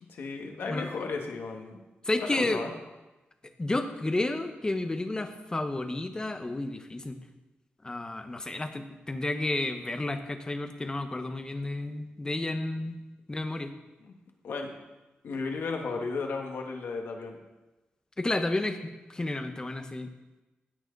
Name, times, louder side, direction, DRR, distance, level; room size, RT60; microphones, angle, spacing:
voice 1, 0.1-1.8 2.2-2.7 14.0-14.1 14.4-14.8 15.2-17.4, left 4 dB, 80° left, 2 dB, 1.8 m, -34 dB
voice 2, 2.0-2.6 3.6-7.2 7.8-13.0 13.3-13.7 18.2-20.1, left 2 dB, 20° left, 7 dB, 1.1 m, -31 dB
16.0 x 9.2 x 4.0 m, 1.1 s
wide cardioid pair, 125°, 4 cm